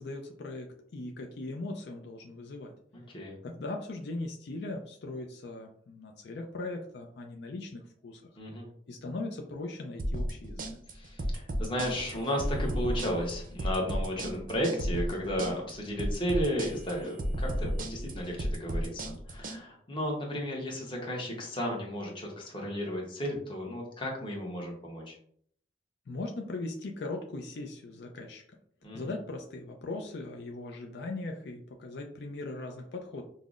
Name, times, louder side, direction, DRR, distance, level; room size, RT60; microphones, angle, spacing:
voice 1, 0.0-2.7 3.4-8.2 8.9-10.7 26.1-28.4 28.9-33.2, left 2 dB, 70° left, 2 dB, 0.4 m, -39 dB
voice 2, 2.9-3.4 8.4-8.7 10.9-25.1 28.8-29.0, equal, 30° left, -1 dB, 0.9 m, -34 dB
sound 1, 10.0-19.6, equal, 50° right, 0.5 m, -33 dB
5.4 x 2.0 x 2.4 m, 0.62 s
head